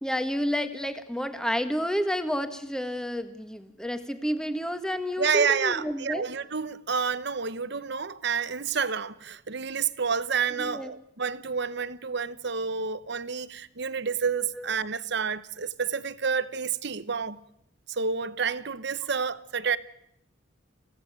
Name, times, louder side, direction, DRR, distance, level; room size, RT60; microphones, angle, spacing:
voice 1, 0.0-6.3 10.6-10.9 14.6-14.7, equal, 5° left, 1.5 m, -30 dB
voice 2, 5.2-17.4 17.9-19.8, right 6 dB, 55° right, 0.9 m, -29 dB
29.0 x 16.5 x 9.3 m
head